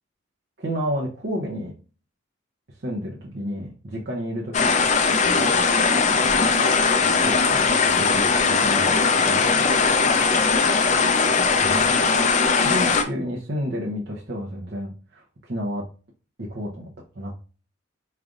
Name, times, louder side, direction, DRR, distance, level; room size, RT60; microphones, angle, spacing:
voice 1, 0.6-1.7 2.8-4.9 5.4-5.5 6.1-6.3 6.6-8.9 9.2-10.4 11.5-12.1 12.5-15.8 16.4-17.3, equal, 55° right, -3 dB, 0.7 m, -31 dB
sound 1, 4.5-13.0, left 4 dB, 35° left, 0.4 m, -19 dB
4.9 x 3.2 x 2.5 m, 0.37 s
head